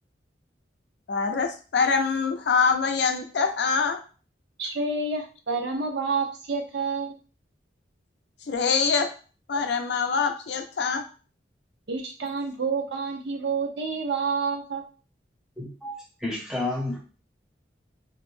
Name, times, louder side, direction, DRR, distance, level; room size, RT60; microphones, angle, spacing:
voice 1, 1.1-4.0 8.5-9.1 9.5-11.0, left 5 dB, 65° left, 6 dB, 0.4 m, -24 dB
voice 2, 4.6-7.2 9.5-9.6 11.9-14.8, right 4 dB, 70° right, 2 dB, 0.6 m, -29 dB
voice 3, 15.6-17.0, left 2 dB, 5° right, -2 dB, 0.6 m, -31 dB
2.5 x 2.0 x 3.1 m, 0.37 s
head